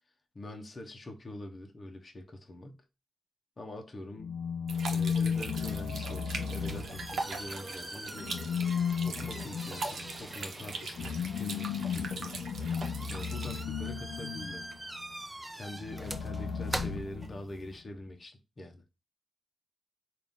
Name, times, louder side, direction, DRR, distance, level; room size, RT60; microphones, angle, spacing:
voice 1, 0.3-2.8 3.6-4.3 4.9-8.3 9.0-12.4 13.1-14.7 15.5-18.8, left 1 dB, 40° left, 0.7 m, -44 dB
sound 1, 4.2-7.5 8.2-14.8 15.8-17.7, left 6 dB, 75° left, 0.4 m, -35 dB
sound 2, 4.7-13.6, right 3 dB, 70° right, 0.8 m, -41 dB
sound 3, 6.4-17.8, right 1 dB, 15° right, 0.6 m, -44 dB
3.9 x 2.4 x 3.5 m
supercardioid pair, 55°, 0 cm